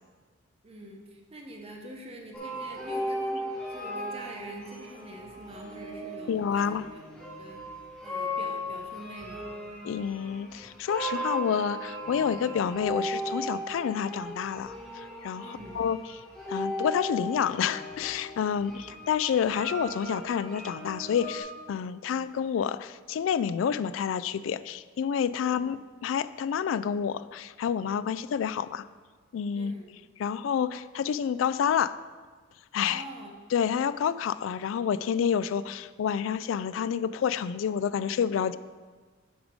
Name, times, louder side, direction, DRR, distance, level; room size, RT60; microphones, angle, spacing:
voice 1, 0.6-7.0 7.4-9.5 15.4-15.8 18.6-18.9 25.4-25.7 29.5-29.9 32.9-33.3, right 1 dB, 30° right, 1 dB, 0.8 m, -45 dB
sound 1, 2.3-21.4, equal, 5° left, 1.3 m, -37 dB
voice 2, 6.3-6.8 9.8-16.0 16.5-25.8 26.0-28.8 29.3-29.7 30.2-32.0 32.7-33.0 33.5-38.6, left 8 dB, 85° left, 16 dB, 0.3 m, -29 dB
7.9 x 5.1 x 5.1 m, 1.4 s
head